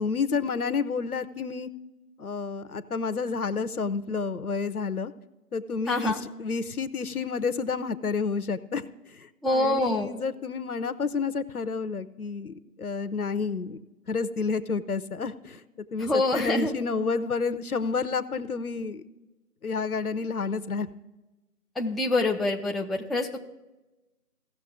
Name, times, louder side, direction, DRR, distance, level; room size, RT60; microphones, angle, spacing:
voice 1, 0.0-1.7 2.2-5.1 5.5-8.8 9.1-13.8 14.1-15.6 15.9-16.1 16.3-19.0 19.6-20.9, left 4 dB, 65° left, 13 dB, 0.7 m, -30 dB
voice 2, 5.9-6.2 9.4-10.1 16.0-16.7 21.8-23.4, left 2 dB, ahead, 0 dB, 0.4 m, -25 dB
16.0 x 6.5 x 3.6 m, 1.0 s
figure-of-eight pair, 170°, 47 cm